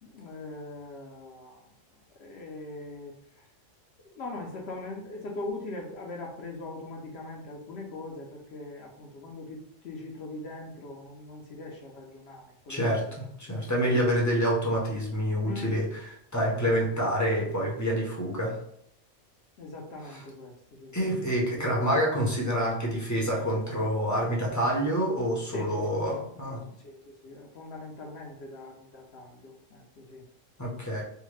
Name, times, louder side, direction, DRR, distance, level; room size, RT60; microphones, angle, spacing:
voice 1, 0.0-1.6 2.2-3.1 4.1-12.8 13.5-13.6 15.4-15.7 19.6-20.9 25.5-30.3, left 2 dB, 65° left, -1 dB, 0.8 m, -41 dB
voice 2, 12.7-18.6 20.1-20.2 20.9-26.6 30.6-31.0, equal, 20° left, -3 dB, 0.5 m, -27 dB
3.4 x 2.1 x 3.1 m, 0.72 s
omnidirectional pair, 1.3 m